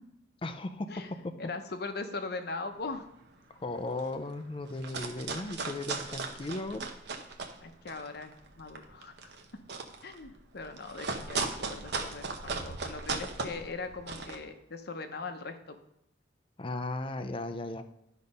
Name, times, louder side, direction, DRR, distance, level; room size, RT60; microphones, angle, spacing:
voice 1, 0.4-0.9 3.5-6.9 16.6-17.8, left 2 dB, 30° left, 8 dB, 0.5 m, -36 dB
voice 2, 1.4-3.1 7.6-9.3 10.0-15.8, left 3 dB, 60° left, 7 dB, 0.8 m, -40 dB
sound 1, 2.9-3.1 3.6-3.7 3.9-4.3 4.6-7.6 7.9-14.4, right 4 dB, 65° right, 0.9 m, -37 dB
11.5 x 4.1 x 5.4 m, 0.80 s
head